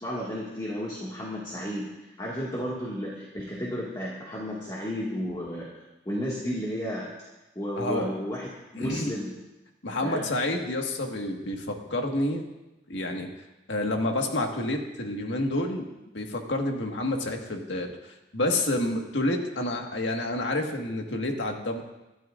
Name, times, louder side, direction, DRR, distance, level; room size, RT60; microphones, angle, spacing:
voice 1, 0.0-5.7 6.1-7.1 7.6-9.3 10.0-10.3, equal, 20° left, -6 dB, 1.9 m, -33 dB
voice 2, 7.8-8.1 8.8-9.1 9.8-12.4 12.9-13.3 13.7-15.9 16.1-21.8, left 1 dB, 85° left, 2 dB, 1.7 m, -29 dB
26.0 x 12.5 x 2.5 m, 1.0 s
head